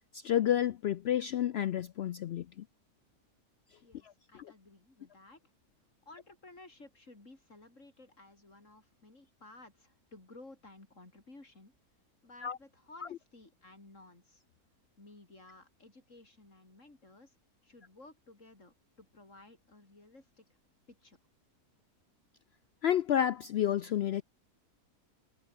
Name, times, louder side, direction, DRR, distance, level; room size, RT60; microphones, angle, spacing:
voice 1, 0.1-2.6 4.4-4.5 12.4-12.6 22.8-24.2, left 10 dB, 85° left, 0.5 m, -30 dB
voice 2, 3.8-5.4 6.0-11.7 12.2-14.4 15.0-17.4 17.6-20.4 20.9-21.2, left 2 dB, 50° left, 5.0 m, -55 dB
omnidirectional pair, 1.6 m